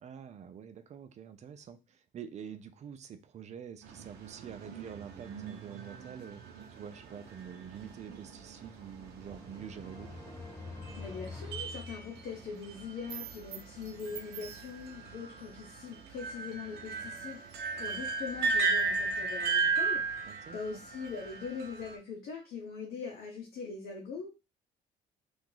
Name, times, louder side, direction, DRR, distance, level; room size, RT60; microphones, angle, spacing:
voice 1, 0.0-10.1 20.2-20.6, right 8 dB, 40° right, 9 dB, 0.5 m, -46 dB
sound 1, 3.8-22.0, right 4 dB, 75° right, 0.8 m, -36 dB
sound 2, 8.2-12.6, left 3 dB, 15° left, 1.5 m, -47 dB
voice 2, 11.0-24.4, left 5 dB, 65° left, -1 dB, 0.9 m, -42 dB
2.8 x 2.5 x 3.8 m, 0.29 s
cardioid pair, 110°, 17 cm